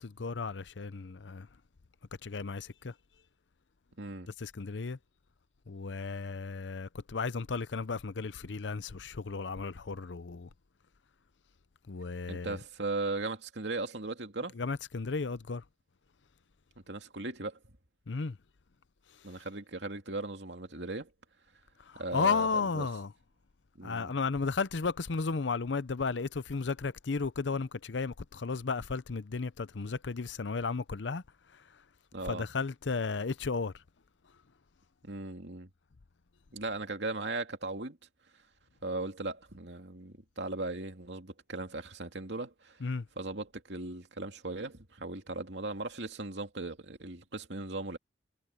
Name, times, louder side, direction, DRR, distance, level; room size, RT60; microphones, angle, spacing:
voice 1, 0.0-1.5 2.2-2.9 4.4-5.0 5.7-10.5 11.9-12.6 14.5-15.6 18.1-18.4 21.9-23.1 23.8-31.2 31.5-31.6 32.3-33.7 42.8-43.1, left 4 dB, 85° left, 0.7 m, -34 dB
voice 2, 4.0-4.3 12.3-14.6 16.9-17.6 19.2-21.1 21.9-22.9 23.8-24.1 32.1-32.5 35.0-35.7 36.5-38.0 38.8-42.8 43.2-48.0, right 2 dB, 75° right, 2.6 m, -38 dB
head